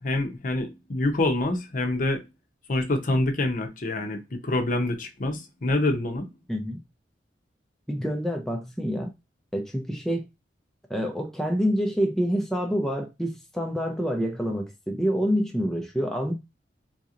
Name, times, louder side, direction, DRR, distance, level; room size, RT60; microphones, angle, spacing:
voice 1, 0.0-2.2 2.7-6.3, left 2 dB, 45° left, 0.7 m, -26 dB
voice 2, 6.5-6.8 7.9-9.1 9.5-10.3 10.9-16.3, equal, ahead, 0.4 m, -27 dB
3.9 x 2.8 x 2.4 m
head